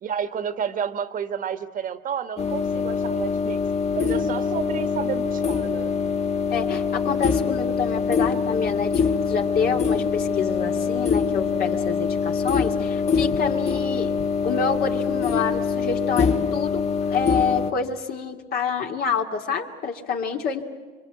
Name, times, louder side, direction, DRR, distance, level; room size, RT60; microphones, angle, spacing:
voice 1, 0.0-3.6 3.9-5.9, right 7 dB, 55° right, 10 dB, 1.4 m, -30 dB
sound 1, 2.4-17.7, left 5 dB, 40° left, 1.4 m, -24 dB
voice 2, 6.5-14.1 14.4-16.8 17.1-20.6, left 6 dB, 65° left, 3 dB, 2.5 m, -27 dB
26.5 x 24.0 x 8.1 m, 1.5 s
cardioid pair, 110°, 17 cm